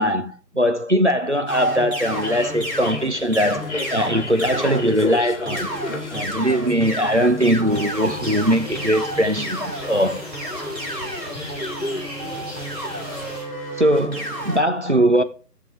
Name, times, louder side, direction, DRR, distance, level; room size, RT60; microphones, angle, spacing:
voice 1, 0.0-5.7 6.1-10.2 13.8-15.2, equal, 45° right, 0.7 m, -20 dB
sound 1, 1.5-5.0 5.5-14.6, equal, 85° right, 5.7 m, -31 dB
sound 2, 2.0-13.4, left 1 dB, 45° left, 1.4 m, -34 dB
sound 3, 7.7-13.4, equal, 25° right, 2.7 m, -38 dB
13.5 x 7.4 x 3.3 m
figure-of-eight pair, 165°, 49 cm